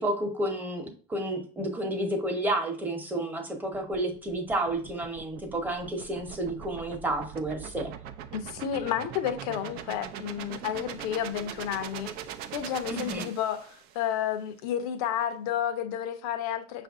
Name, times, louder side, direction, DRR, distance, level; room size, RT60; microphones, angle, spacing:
voice 1, 0.0-7.9 12.9-13.3, right 1 dB, 10° right, 0.9 m, -31 dB
sound 1, 3.7-14.0, right 9 dB, 60° right, 0.4 m, -42 dB
voice 2, 8.3-12.1 12.5-16.8, left 9 dB, 85° left, 0.7 m, -31 dB
5.6 x 2.6 x 3.5 m
cardioid pair, 135°, 18 cm